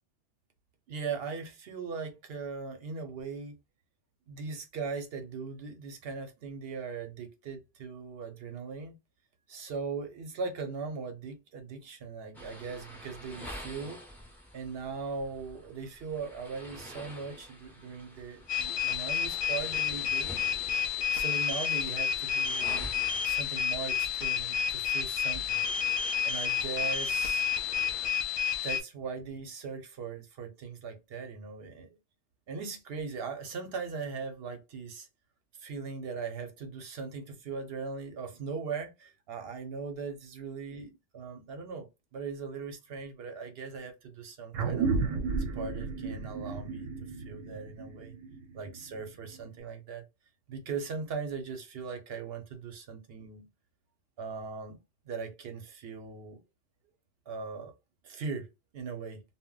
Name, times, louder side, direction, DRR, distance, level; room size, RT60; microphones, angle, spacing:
voice 1, 0.9-3.6 4.3-9.0 9.5-14.0 14.5-20.3 21.1-23.0 23.2-25.6 26.2-27.4 28.6-32.0 32.5-35.1 35.6-44.9 45.5-48.1 48.5-50.0 50.5-53.5 54.2-56.4 57.3-57.7 58.0-58.5 58.7-59.2, right 5 dB, 60° right, 0.8 m, -39 dB
sound 1, 12.3-28.1, equal, 5° left, 0.3 m, -48 dB
sound 2, 18.5-28.8, left 8 dB, 60° left, 0.7 m, -30 dB
sound 3, 44.5-49.4, right 4 dB, 85° right, 1.0 m, -33 dB
2.1 x 2.1 x 3.7 m
omnidirectional pair, 1.3 m